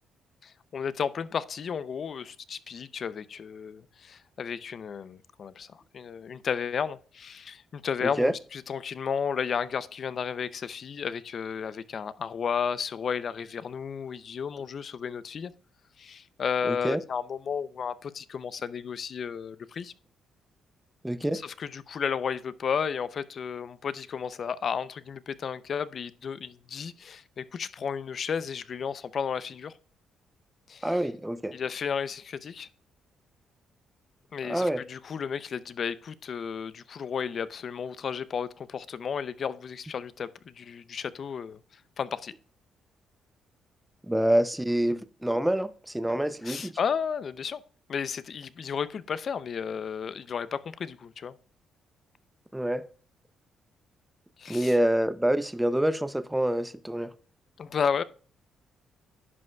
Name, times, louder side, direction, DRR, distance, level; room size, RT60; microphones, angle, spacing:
voice 1, 0.4-15.5 16.0-19.9 21.3-29.7 30.7-30.9 31.5-32.7 34.3-41.6 42.0-42.3 46.4-47.6 47.9-51.3 54.4-54.7 57.6-58.0, left 7 dB, 50° left, 0.5 m, -33 dB
voice 2, 8.0-8.3 16.6-17.0 21.0-21.4 30.8-31.6 34.4-34.8 44.1-46.7 52.5-52.9 54.5-57.1, right 1 dB, 5° right, 0.5 m, -26 dB
11.0 x 5.3 x 2.2 m
cardioid pair, 90°, 0 cm